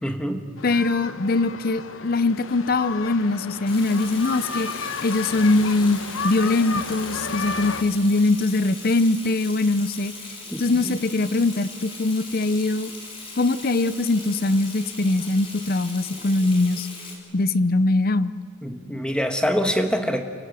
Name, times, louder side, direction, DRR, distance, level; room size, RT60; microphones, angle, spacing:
voice 1, 0.0-0.4 10.5-11.0 18.6-20.2, equal, 5° left, 5 dB, 1.4 m, -25 dB
sound 1, 0.6-7.8, left 4 dB, 85° left, 1.1 m, -33 dB
voice 2, 0.6-6.0 6.2-10.1 10.6-12.9 13.4-16.9 17.3-18.3, left 2 dB, 45° left, 15 dB, 0.6 m, -22 dB
Water tap faucet / Sink (filling or washing), 3.7-17.2, left 3 dB, 30° left, 3.9 m, -39 dB
28.5 x 17.0 x 7.7 m, 2.3 s
head